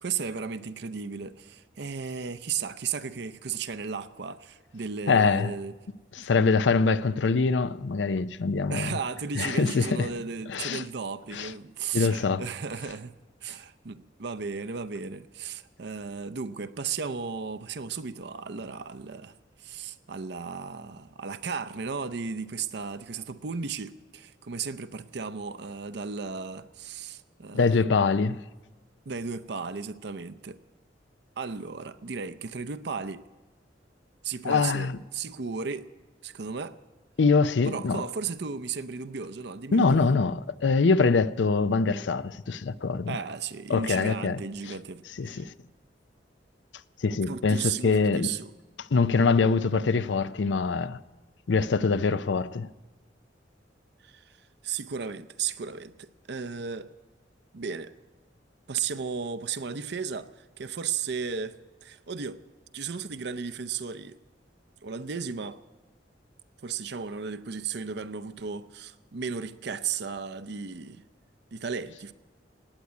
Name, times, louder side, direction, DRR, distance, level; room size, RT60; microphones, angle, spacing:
voice 1, 0.0-5.7 8.7-27.9 29.1-30.6 31.4-33.2 34.2-35.9 36.2-36.8 37.7-40.0 43.1-45.5 47.2-48.5 54.0-54.4 54.6-56.9 57.5-57.9 58.7-62.4 62.7-64.2 64.8-65.6 66.6-71.0 71.5-72.1, right 5 dB, 65° right, 0.6 m, -35 dB
voice 2, 5.1-5.5 6.1-9.0 9.3-10.1 10.5-10.8 11.3-11.5 11.9-12.4 27.5-28.4 34.4-35.0 37.2-38.0 39.7-43.1 43.7-44.4 45.2-45.5 47.0-48.3 48.9-51.0 51.5-52.7, left 4 dB, 80° left, 0.5 m, -24 dB
17.5 x 8.3 x 9.5 m
head